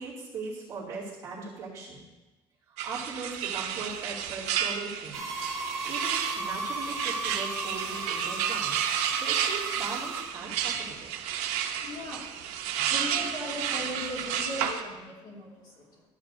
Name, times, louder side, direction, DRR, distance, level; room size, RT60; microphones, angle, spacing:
voice 1, 0.0-2.0 2.7-5.2 5.8-11.1 12.7-12.9, right 4 dB, 30° right, -8 dB, 2.4 m, -39 dB
sound 1, 2.8-14.8, right 9 dB, 85° right, 0.8 m, -31 dB
sound 2, 5.1-10.2, right 3 dB, ahead, 2.0 m, -35 dB
voice 2, 11.8-12.2 12.8-16.0, left 1 dB, 45° left, -4 dB, 2.3 m, -38 dB
13.0 x 7.3 x 2.6 m, 1.1 s
cardioid pair, 180°, 11 cm